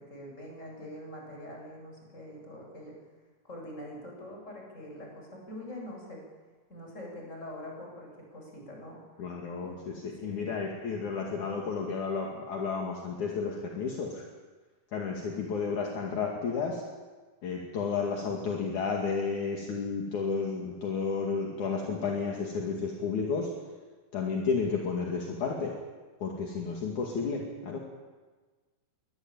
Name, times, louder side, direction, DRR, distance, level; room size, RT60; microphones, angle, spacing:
voice 1, 0.0-2.9 3.4-6.2 6.7-9.0 9.6-9.8 10.2-10.5, left 1 dB, 20° left, 0 dB, 8.2 m, -44 dB
voice 2, 9.2-14.2 14.9-16.8 17.4-23.5 24.1-25.8 26.2-27.8, left 5 dB, 60° left, -1 dB, 3.7 m, -32 dB
23.5 x 20.5 x 9.1 m, 1.3 s
omnidirectional pair, 4.0 m